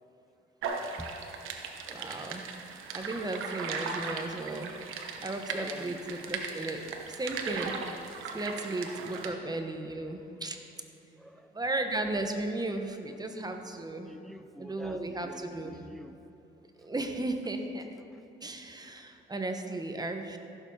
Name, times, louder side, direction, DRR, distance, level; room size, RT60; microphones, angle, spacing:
voice 1, 0.6-1.1 1.4-2.2 3.6-3.8 5.5-6.1 6.6-6.7 9.0-9.1 11.2-11.5 14.0-16.2 18.1-18.2 18.8-19.1, equal, ahead, 9 dB, 0.6 m, -47 dB
sound 1, 0.6-9.3, right 5 dB, 85° right, 1.1 m, -38 dB
voice 2, 1.9-4.7 5.2-7.8 8.3-10.6 11.5-14.1 14.6-16.0 16.8-17.9 18.4-20.4, right 2 dB, 20° right, 5 dB, 1.1 m, -35 dB
15.5 x 7.1 x 4.8 m, 2.9 s
cardioid pair, 90°, 20 cm